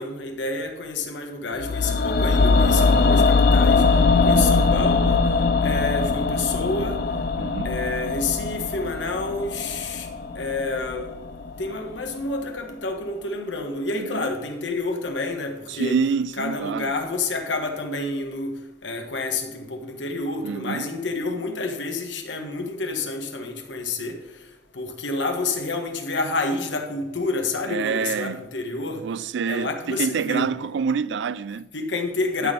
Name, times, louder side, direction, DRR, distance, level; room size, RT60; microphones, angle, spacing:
voice 1, 0.0-3.8 4.2-5.2 5.6-7.0 7.6-10.1 10.3-11.1 11.6-16.0 16.4-24.2 24.7-29.0 29.4-30.5 31.7-32.5, left 3 dB, 85° left, 1.3 m, -29 dB
sound 1, 1.6-11.7 12.0-12.1, left 4 dB, 55° left, 0.5 m, -21 dB
voice 2, 4.2-4.5 7.4-7.8 13.9-14.2 15.7-16.9 20.4-20.9 27.7-28.4 29.0-31.7 32.4-32.5, right 6 dB, 75° right, 0.3 m, -27 dB
12.0 x 4.3 x 5.2 m
head